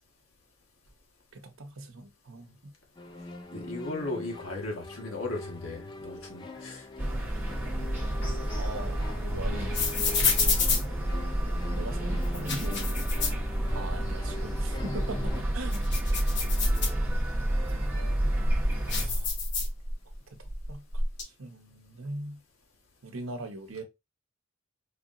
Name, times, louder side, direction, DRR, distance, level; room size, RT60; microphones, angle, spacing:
voice 1, 1.3-2.7 8.5-10.3 11.7-13.0 13.7-15.9 19.0-19.3 20.3-22.4 23.0-23.8, right 2 dB, 75° right, 0.9 m, -41 dB
sound 1, 2.9-15.4, left 2 dB, 20° left, 0.4 m, -42 dB
voice 2, 3.5-6.9 18.8-19.3, left 2 dB, 70° left, 1.6 m, -37 dB
sound 2, 7.0-19.1, right 1 dB, 10° right, 1.0 m, -30 dB
sound 3, 8.2-11.6 12.2-14.1 14.4-14.5 15.0-17.4 18.0-20.1 20.4-21.2, left 3 dB, 55° left, 1.2 m, -29 dB
4.8 x 2.9 x 2.5 m
head